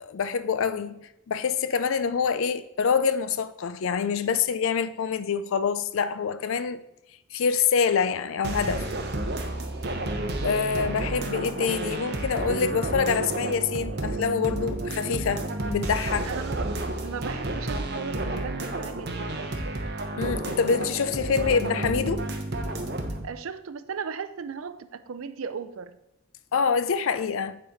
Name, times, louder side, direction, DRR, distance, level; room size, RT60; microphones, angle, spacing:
voice 1, 0.0-6.8 7.3-8.9 10.4-16.3 20.2-22.3 26.5-27.6, left 6 dB, 60° left, 0.4 m, -26 dB
sound 1, 8.4-23.2, right 2 dB, 45° right, 0.9 m, -31 dB
voice 2, 16.2-19.9 23.2-26.0, right 6 dB, 65° right, 0.4 m, -37 dB
9.0 x 4.2 x 4.3 m
head